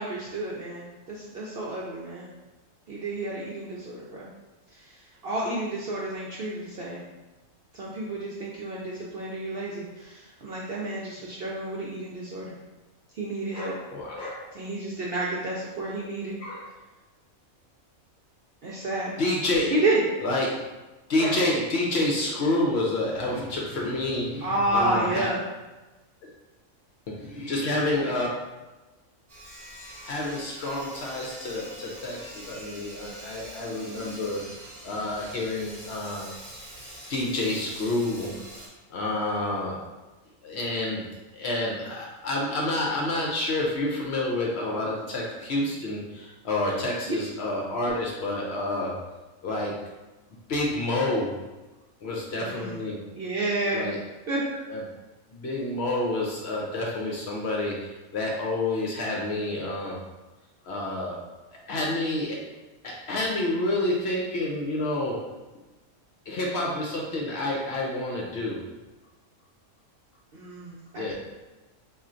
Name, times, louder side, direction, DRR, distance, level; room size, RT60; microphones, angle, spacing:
voice 1, 0.0-2.4 2.9-4.3 4.7-7.0 7.7-12.5 13.2-13.8 14.5-16.4 18.6-19.1 19.7-20.0 24.4-25.4 34.0-34.2 47.1-47.2 52.3-52.8 53.1-53.9 54.3-54.4 70.3-71.1, right 2 dB, 65° right, -5 dB, 0.6 m, -30 dB
voice 2, 13.5-14.4 16.4-16.7 19.2-19.8 20.2-20.6 21.1-25.3 27.2-28.3 30.0-34.4 34.8-36.3 37.1-38.3 38.9-39.8 40.4-41.0 41.3-49.0 49.4-49.7 50.5-51.3 52.0-53.0 53.7-54.0 54.7-54.8 55.3-60.0 60.6-61.1 61.7-62.4 62.8-65.2 66.3-68.6 71.0-71.1, left 2 dB, 60° left, -2 dB, 0.8 m, -28 dB
Sawing, 29.3-38.7, right 1 dB, 30° right, 0.7 m, -44 dB
4.3 x 2.4 x 2.5 m, 1.1 s
omnidirectional pair, 1.4 m